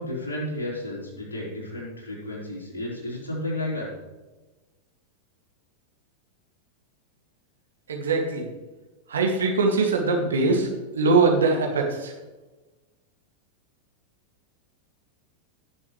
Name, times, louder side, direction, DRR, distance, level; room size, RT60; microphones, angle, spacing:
voice 1, 0.0-3.9, left 1 dB, 75° left, -3 dB, 4.1 m, -32 dB
voice 2, 7.9-8.5 9.1-10.7 11.0-12.1, right 3 dB, 65° right, 1 dB, 2.1 m, -22 dB
17.5 x 7.1 x 3.2 m, 1.2 s
figure-of-eight pair, 90°, 0 cm